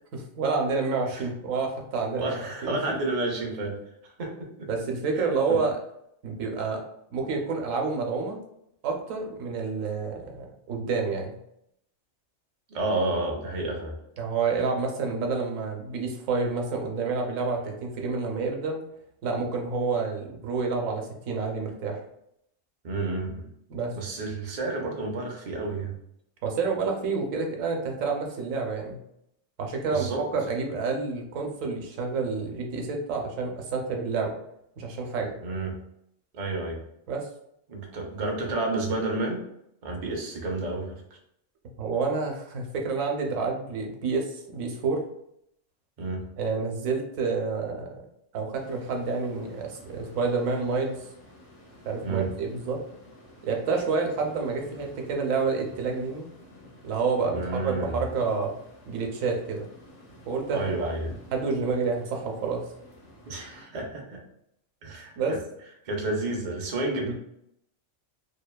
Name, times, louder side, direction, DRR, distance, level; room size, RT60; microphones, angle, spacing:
voice 1, 0.1-2.8 4.7-5.8 6.2-6.8 7.1-8.4 8.8-11.4 14.2-18.8 19.2-22.0 23.7-24.0 26.4-29.0 29.6-34.4 34.8-35.4 37.1-37.3 41.8-45.0 46.4-48.0 48.3-51.1 51.9-52.8 53.4-56.3 56.8-58.6 58.9-59.7 60.3-60.9 61.3-62.6 65.2-65.4 67.1-67.2, right 4 dB, 90° right, 2 dB, 1.0 m, -29 dB
voice 2, 2.1-4.7 5.2-5.6 12.7-13.9 22.8-23.5 23.9-26.0 29.9-30.2 35.4-35.8 36.3-36.8 37.7-39.4 39.8-41.2 46.0-46.3 52.0-52.4 57.3-58.0 60.5-61.1 63.3-64.2 64.8-65.4 65.8-67.1, right 2 dB, 55° right, 1 dB, 0.4 m, -31 dB
sound 1, 48.6-63.6, equal, 50° left, 1.0 m, -51 dB
2.9 x 2.1 x 2.2 m, 0.76 s
omnidirectional pair, 1.3 m